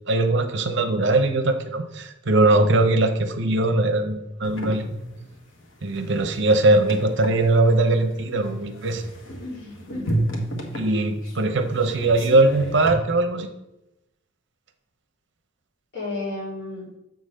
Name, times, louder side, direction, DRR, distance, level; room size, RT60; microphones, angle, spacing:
voice 1, 0.1-4.8 5.8-9.0 10.8-11.1 11.4-13.5, right 2 dB, 65° right, 7 dB, 0.8 m, -20 dB
sound 1, 4.4-12.9, right 1 dB, 80° left, 1.4 m, -33 dB
voice 2, 9.4-10.4 10.8-11.3 15.9-16.9, left 2 dB, 60° left, -5 dB, 3.0 m, -33 dB
7.1 x 4.0 x 6.4 m, 0.89 s
head